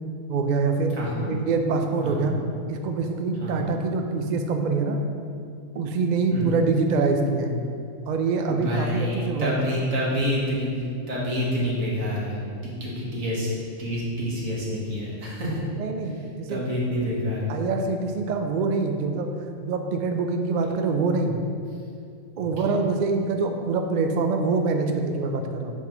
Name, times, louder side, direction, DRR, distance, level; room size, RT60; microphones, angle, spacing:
voice 1, 0.3-1.0 1.3-2.3 2.7-5.0 5.7-7.6 8.1-9.7 15.8-16.6 17.5-19.3 19.6-21.4 22.4-25.7, right 4 dB, 60° right, 4 dB, 0.5 m, -25 dB
voice 2, 0.9-1.3 2.0-2.3 3.4-3.7 6.3-6.6 8.5-15.6 16.0-16.1 16.5-17.6 22.4-22.8, equal, 90° right, -6 dB, 1.9 m, -28 dB
7.1 x 5.8 x 3.0 m, 2.4 s
omnidirectional pair, 1.4 m